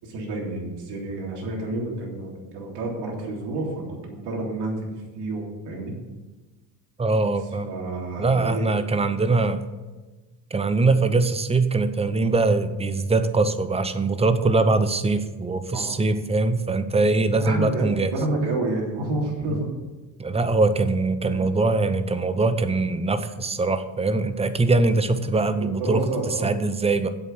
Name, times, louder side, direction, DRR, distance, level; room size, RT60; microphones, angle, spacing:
voice 1, 0.0-5.9 7.7-8.8 14.5-14.6 15.7-16.0 17.4-19.7 21.3-21.4 25.6-26.6, right 2 dB, 65° right, -1 dB, 3.5 m, -29 dB
voice 2, 7.0-7.7 8.2-9.6 10.5-18.1 19.5-19.6 20.2-26.0 26.4-27.1, right 3 dB, 15° right, 11 dB, 0.8 m, -22 dB
8.1 x 7.3 x 7.8 m, 1.2 s
cardioid pair, 115°, 43 cm